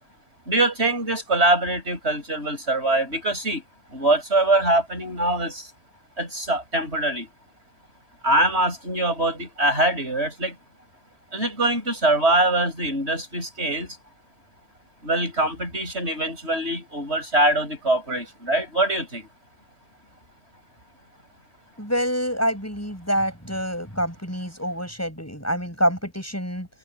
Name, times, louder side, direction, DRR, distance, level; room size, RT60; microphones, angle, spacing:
voice 1, 0.5-3.6 3.9-5.7 6.2-7.3 8.2-10.6 11.3-14.0 15.0-19.3, right 2 dB, 45° right, 8.2 m, -23 dB
voice 2, 21.8-26.7, equal, 10° left, 7.6 m, -26 dB
omnidirectional pair, 1.5 m